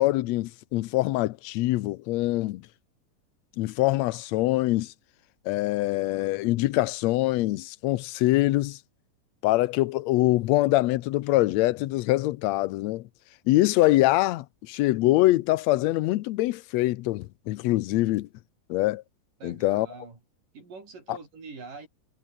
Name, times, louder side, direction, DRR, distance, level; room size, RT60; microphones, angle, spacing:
voice 1, 0.0-2.6 3.6-4.9 5.4-8.8 9.4-13.1 13.5-18.3 18.7-19.0 19.4-19.9 21.1-21.2, left 17 dB, 75° left, 1.6 m, -24 dB
voice 2, 19.4-20.2 20.5-21.9, right 4 dB, 75° right, 8.1 m, -44 dB
omnidirectional pair, 3.8 m